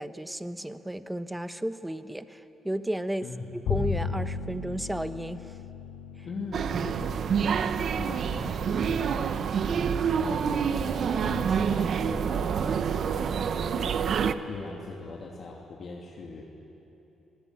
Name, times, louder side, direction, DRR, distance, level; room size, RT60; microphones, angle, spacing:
voice 1, 0.0-5.5 6.2-6.3, right 1 dB, 10° right, 11 dB, 1.0 m, -33 dB
voice 2, 3.2-3.5 6.2-7.6 8.0-16.4, left 3 dB, 50° left, -2 dB, 2.7 m, -41 dB
Bowed string instrument, 3.6-10.1, left 6 dB, 75° left, 2.4 m, -37 dB
sound 1, 6.5-14.3, right 7 dB, 60° right, 0.9 m, -27 dB
24.5 x 19.0 x 9.6 m, 3.0 s
cardioid pair, 90°, 0 cm